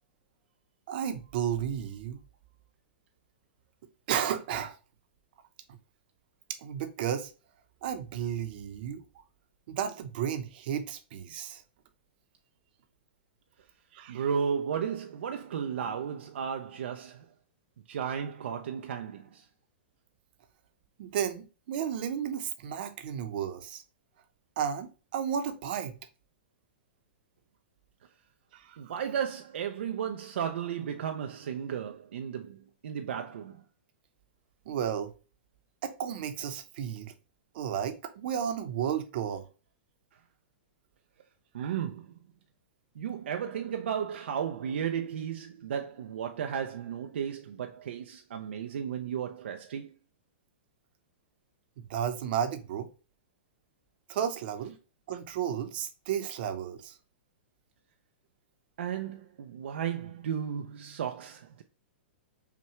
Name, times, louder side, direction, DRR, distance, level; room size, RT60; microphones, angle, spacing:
voice 1, 0.9-2.2 4.1-4.8 6.6-7.3 7.8-9.0 9.7-11.6 13.9-14.2 21.0-23.8 24.6-26.0 28.5-28.9 34.7-35.1 35.8-37.1 37.5-39.5 41.6-41.8 51.8-52.9 54.1-54.8 55.1-57.0, right 9 dB, 55° right, 0.8 m, -33 dB
voice 2, 14.1-17.2 17.9-19.4 28.8-33.6 41.5-42.1 43.0-49.9 58.8-61.6, right 8 dB, 75° right, 0.4 m, -34 dB
5.7 x 2.3 x 3.1 m
hypercardioid pair, 135°, 6 cm